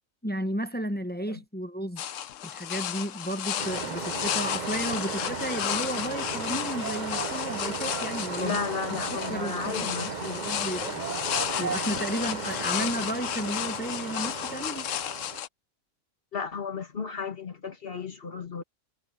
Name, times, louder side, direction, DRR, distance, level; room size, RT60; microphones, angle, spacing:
voice 1, 0.2-2.0 2.4-8.6 8.9-9.0 9.3-14.9, right 1 dB, 10° left, 0.8 m, -33 dB
sound 1, 2.0-15.5, left 11 dB, 75° left, 1.1 m, -33 dB
sound 2, 3.6-15.4, right 5 dB, 40° right, 0.9 m, -36 dB
voice 2, 8.4-10.5 16.3-18.6, left 5 dB, 45° left, 1.9 m, -34 dB
omnidirectional pair, 1.4 m